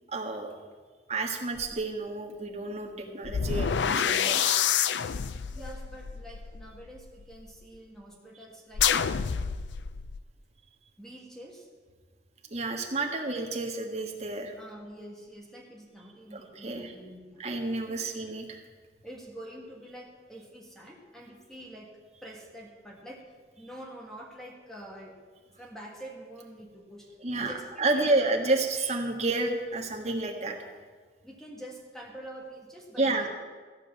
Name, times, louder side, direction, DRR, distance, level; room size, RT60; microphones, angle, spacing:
voice 1, 0.1-0.5 1.1-4.6 12.5-14.5 16.3-16.9 17.4-18.6 27.2-30.6 33.0-33.3, right 2 dB, 40° right, 1 dB, 1.5 m, -30 dB
sound 1, 1.6-1.7 3.2-7.3 8.7-10.2, left 8 dB, 90° left, 0.5 m, -28 dB
voice 2, 5.5-9.4 11.0-11.7 14.5-17.4 17.9-18.1 19.0-21.9 22.2-23.2 23.6-25.2 25.6-28.4 31.2-33.3, right 1 dB, 5° left, -1 dB, 1.7 m, -46 dB
14.5 x 5.3 x 8.7 m, 1.5 s
head